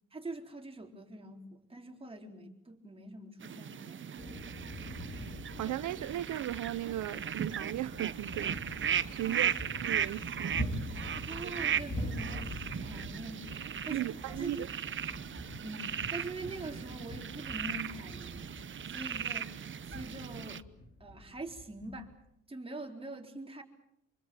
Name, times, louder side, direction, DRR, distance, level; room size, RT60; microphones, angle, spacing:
voice 1, 0.1-4.1 9.2-9.4 11.2-14.1 14.4-14.6 15.5-18.6 18.9-19.5 19.9-20.6 21.0-22.1 22.5-23.6, right 2 dB, 20° right, 4.2 m, -44 dB
sound 1, 3.4-20.6, right 8 dB, 40° right, 0.9 m, -37 dB
sound 2, 4.2-22.1, equal, 35° left, 5.1 m, -44 dB
voice 2, 5.6-9.5 9.8-10.6 13.9-14.7, right 14 dB, 75° right, 0.9 m, -36 dB
26.0 x 23.5 x 7.4 m
cardioid pair, 90°, 30 cm